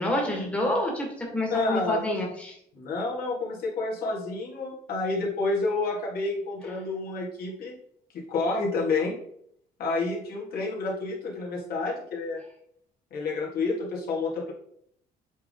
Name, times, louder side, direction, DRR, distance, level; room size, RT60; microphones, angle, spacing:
voice 1, 0.0-2.6, left 1 dB, 5° left, -1 dB, 1.8 m, -28 dB
voice 2, 1.5-2.0 2.7-7.8 8.1-9.2 9.8-12.4 13.1-14.5, left 3 dB, 60° left, -3 dB, 2.2 m, -29 dB
7.8 x 3.6 x 3.8 m, 0.69 s
cardioid pair, 110°, 17 cm